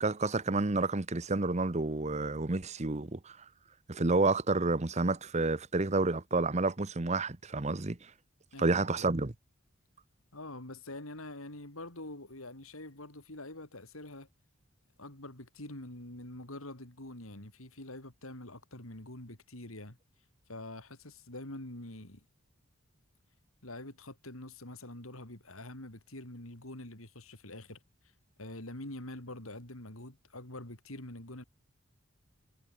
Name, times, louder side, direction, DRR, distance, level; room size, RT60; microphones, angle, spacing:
voice 1, 0.0-3.4 3.9-8.0 8.6-9.3, right 3 dB, 30° right, 0.9 m, -29 dB
voice 2, 8.5-9.1 10.3-14.3 15.0-20.0 20.5-22.2 23.6-27.8 28.4-31.4, left 1 dB, 90° left, 5.1 m, -45 dB
head